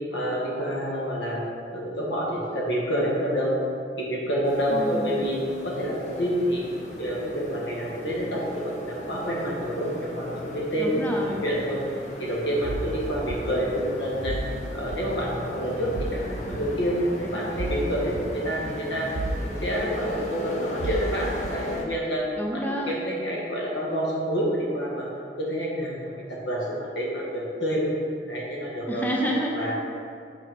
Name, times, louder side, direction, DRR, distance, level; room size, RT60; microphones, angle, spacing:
voice 1, 0.1-1.4 1.7-3.5 4.0-5.4 5.6-6.6 7.0-10.9 11.3-11.8 12.2-14.4 14.7-19.1 19.4-22.3 22.5-25.0 25.4-26.0 26.3-27.9 28.3-29.0 29.5-29.7, equal, 90° left, -4 dB, 1.6 m, -28 dB
sound 1, 4.4-21.8, left 1 dB, 40° left, 0.8 m, -37 dB
voice 2, 4.7-5.1 10.7-11.5 22.4-22.9 28.9-29.8, equal, 10° left, -1 dB, 0.5 m, -29 dB
sound 2, 12.6-12.9 13.3-13.4 14.2-14.5 14.9-15.0 15.9-16.2 16.5-16.6 17.6-17.8 18.2-18.3 19.2-19.4 19.8-19.9 20.8-21.0 21.4-21.6, right 2 dB, 70° right, 0.5 m, -31 dB
6.4 x 4.0 x 5.3 m, 2.3 s
head